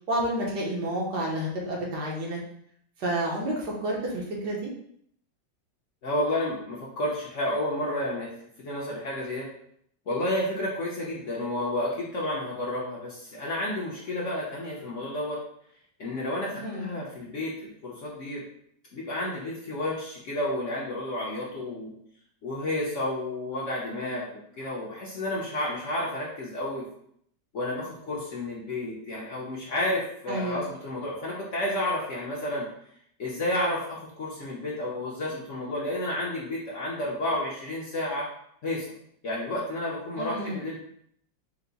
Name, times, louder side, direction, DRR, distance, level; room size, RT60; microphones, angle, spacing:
voice 1, 0.1-2.4 3.0-4.7 16.6-16.8 30.3-30.6 40.2-40.6, right 1 dB, 70° right, -3 dB, 1.5 m, -30 dB
voice 2, 6.0-8.3 8.6-9.5 10.1-15.4 16.0-18.4 18.9-21.9 22.4-26.8 27.5-32.7 33.2-38.3 38.6-38.9 39.2-40.8, left 1 dB, 55° left, -5 dB, 1.0 m, -31 dB
4.6 x 2.1 x 3.9 m, 0.69 s
omnidirectional pair, 1.9 m